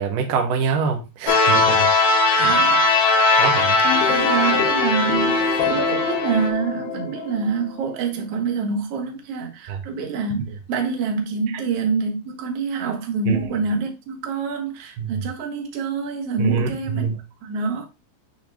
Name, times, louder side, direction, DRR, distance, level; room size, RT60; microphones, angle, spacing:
voice 1, 0.0-1.9 2.3-2.6 3.4-3.8 9.7-9.8 13.3-13.4 15.0-15.2 16.4-17.2, right 6 dB, 65° right, 2.3 m, -25 dB
sound 1, 1.3-6.5, left 2 dB, 70° left, 2.4 m, -19 dB
voice 2, 2.4-2.9 4.1-17.1 17.4-17.9, right 5 dB, 90° right, 1.3 m, -26 dB
sound 2, 3.6-7.9, left 5 dB, 90° left, 3.2 m, -26 dB
8.6 x 3.5 x 3.4 m
omnidirectional pair, 5.2 m